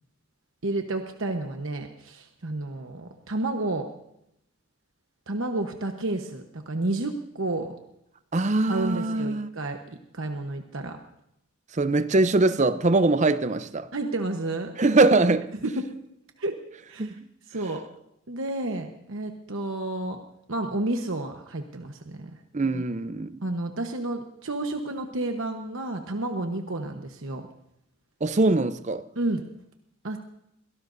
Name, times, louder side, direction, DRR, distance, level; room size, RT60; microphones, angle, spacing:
voice 1, 0.6-3.9 5.3-7.7 8.7-11.0 13.9-14.7 15.6-15.8 16.4-16.6 16.9-17.1 17.5-17.8 18.3-20.2 20.5-22.3 22.6-22.8 23.4-27.5 29.2-29.4 30.0-30.2, right 2 dB, 65° right, 1.1 m, -31 dB
voice 2, 8.3-9.5 11.8-13.9 14.8-15.5 17.0-17.2 22.5-23.3 28.2-29.0, right 2 dB, 35° right, 0.6 m, -22 dB
23.5 x 17.5 x 2.7 m
head